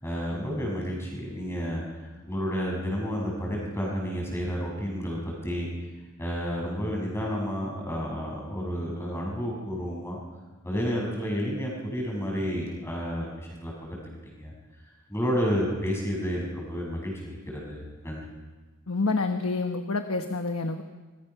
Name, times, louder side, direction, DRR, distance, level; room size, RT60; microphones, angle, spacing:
voice 1, 0.0-1.8 2.3-5.7 6.2-10.2 10.6-14.5 15.1-18.2, equal, 10° left, -1 dB, 6.2 m, -31 dB
voice 2, 18.9-20.8, left 3 dB, 75° left, 6 dB, 1.2 m, -28 dB
25.5 x 21.0 x 5.8 m, 1.3 s
head